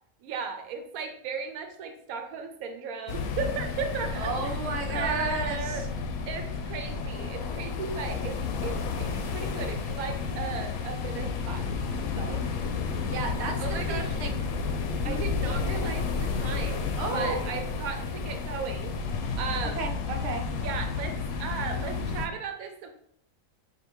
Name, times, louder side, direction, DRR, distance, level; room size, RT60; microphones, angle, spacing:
voice 1, 0.2-4.5 4.9-5.9 6.3-11.8 12.2-12.5 13.6-14.2 15.0-18.9 19.4-19.9 20.6-22.9, right 5 dB, 80° right, 6 dB, 1.0 m, -36 dB
sound 1, 3.1-22.3, left 5 dB, 80° left, 1.0 m, -31 dB
voice 2, 4.2-5.9 13.1-14.3 15.0-15.2 17.0-17.4 19.8-20.4, right 3 dB, 60° right, 2 dB, 0.8 m, -33 dB
sound 2, 15.3-15.4 15.7-16.2 16.5-17.0 17.3-17.8 18.1-18.6 18.9-19.4 19.7-19.9, right 1 dB, 55° left, 1.5 m, -41 dB
5.1 x 2.6 x 3.0 m, 0.68 s
omnidirectional pair, 1.5 m